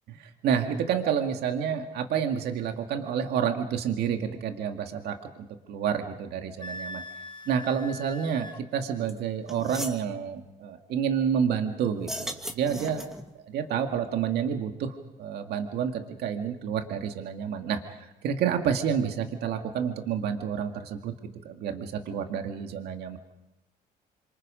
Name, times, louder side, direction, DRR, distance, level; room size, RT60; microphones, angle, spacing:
voice 1, 0.1-7.0 7.5-13.1 13.4-21.1 21.4-23.2, right 7 dB, 75° right, 5 dB, 2.0 m, -29 dB
Wind instrument woodwind instrument, 6.6-8.6, left 1 dB, 25° left, 1.5 m, -41 dB
sound 1, 9.1-9.2 9.5-10.0 12.0-13.3, equal, ahead, 2.3 m, -37 dB
29.0 x 25.5 x 5.1 m, 0.91 s
cardioid pair, 110°, 17 cm